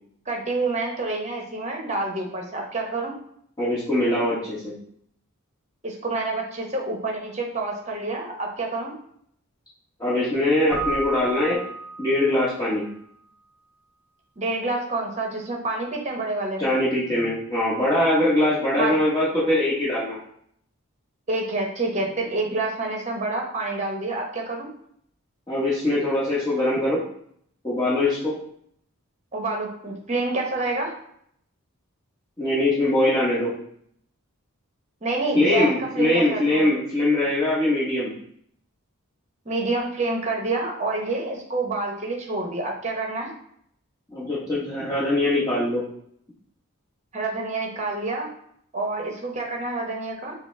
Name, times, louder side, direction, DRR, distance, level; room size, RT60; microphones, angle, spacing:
voice 1, 0.3-3.1 5.8-8.9 14.4-16.7 17.0-17.4 18.8-18.9 21.3-24.7 29.3-30.9 35.0-36.7 39.4-43.3 47.1-48.3 48.7-50.3, right 2 dB, 30° right, 0 dB, 0.8 m, -28 dB
voice 2, 3.6-4.7 10.0-11.6 12.0-12.8 16.6-20.2 25.5-27.0 27.6-28.3 32.4-33.5 35.3-38.1 44.1-45.8, left 1 dB, 20° left, -10 dB, 1.1 m, -22 dB
Keyboard (musical), 10.7-12.5, right 3 dB, 10° right, 0.4 m, -31 dB
5.8 x 2.0 x 3.2 m, 0.68 s
head